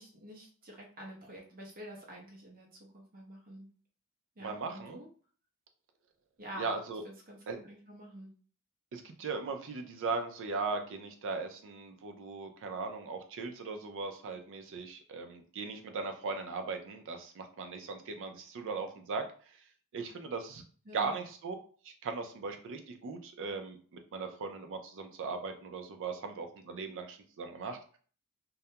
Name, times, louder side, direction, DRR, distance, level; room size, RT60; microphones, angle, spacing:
voice 1, 0.0-3.7 4.4-5.1 6.4-6.8 7.0-8.3 20.9-21.1, equal, 40° right, -1 dB, 0.8 m, -48 dB
voice 2, 4.4-5.0 6.6-7.0 7.5-7.6 8.9-19.6 19.9-20.6 20.9-21.6 21.8-28.0, right 4 dB, 60° right, 5 dB, 0.4 m, -38 dB
2.3 x 2.1 x 2.8 m, 0.43 s
head